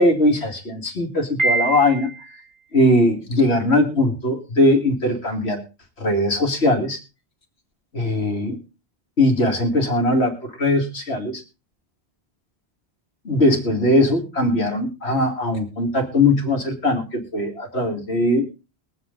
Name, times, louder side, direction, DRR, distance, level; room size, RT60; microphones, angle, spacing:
voice 1, 0.0-2.1 2.7-5.6 6.0-7.0 7.9-8.5 9.2-11.4 13.2-18.5, left 1 dB, 75° left, 3 dB, 2.8 m, -20 dB
Piano, 1.4-2.4, right 3 dB, 50° right, 3.8 m, -24 dB
21.5 x 7.9 x 3.9 m, 0.29 s
omnidirectional pair, 1.1 m